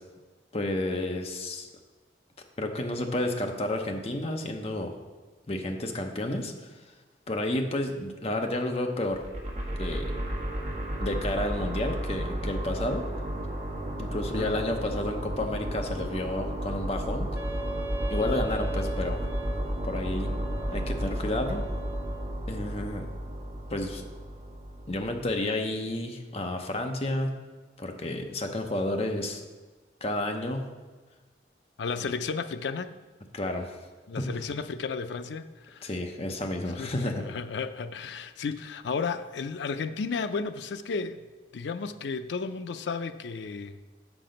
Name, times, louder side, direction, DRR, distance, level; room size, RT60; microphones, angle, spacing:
voice 1, 0.5-1.7 2.6-4.9 5.5-6.5 7.3-9.2 9.8-10.1 11.0-13.1 14.0-17.3 18.1-19.2 19.8-20.3 20.7-21.7 22.5-23.1 23.7-24.0 24.9-27.4 27.8-29.4 30.0-30.7 32.0-32.1 33.3-33.8 34.2-34.3 35.8-37.2, left 1 dB, 35° left, 4 dB, 0.7 m, -31 dB
sound 1, 9.1-25.3, equal, 40° right, 1.3 m, -33 dB
Wind instrument woodwind instrument, 17.3-22.4, right 2 dB, 15° right, 0.5 m, -40 dB
voice 2, 31.8-33.0 34.1-35.9 36.8-41.2 41.5-43.8, left 5 dB, 80° left, 11 dB, 0.4 m, -33 dB
6.6 x 6.1 x 5.1 m, 1.3 s
head